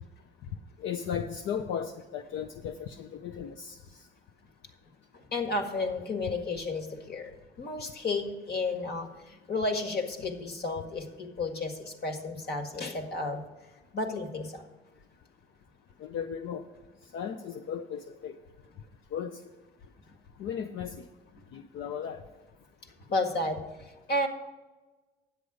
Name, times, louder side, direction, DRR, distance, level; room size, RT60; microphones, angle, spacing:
voice 1, 0.8-3.8 16.0-16.6 17.1-18.4 19.1-19.4 20.4-21.0 21.5-22.2, left 8 dB, 80° left, 5 dB, 0.6 m, -36 dB
voice 2, 5.3-7.3 7.6-13.4 13.9-14.6 23.1-23.6 24.1-24.3, left 2 dB, 55° left, 4 dB, 1.8 m, -32 dB
10.5 x 7.9 x 4.9 m, 1.2 s
cardioid pair, 90°, 20 cm